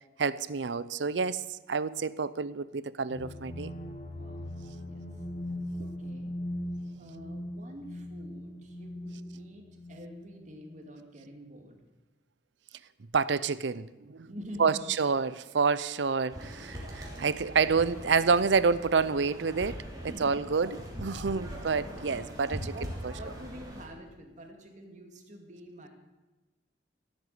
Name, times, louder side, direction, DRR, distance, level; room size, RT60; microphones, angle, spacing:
voice 1, 0.2-3.7 13.1-14.3 14.6-22.7, right 5 dB, 75° right, 17 dB, 0.6 m, -28 dB
sound 1, 3.1-10.8, left 1 dB, 35° left, 1.4 m, -40 dB
voice 2, 4.0-4.5 4.8-5.0 5.8-6.3 7.0-9.6 9.9-11.8 14.2-14.9 20.1-20.4 21.2-21.7 22.6-25.9, equal, 40° right, 3 dB, 2.2 m, -47 dB
sound 2, 16.3-23.9, equal, 20° right, 3.1 m, -41 dB
15.5 x 8.0 x 8.2 m, 1.1 s
head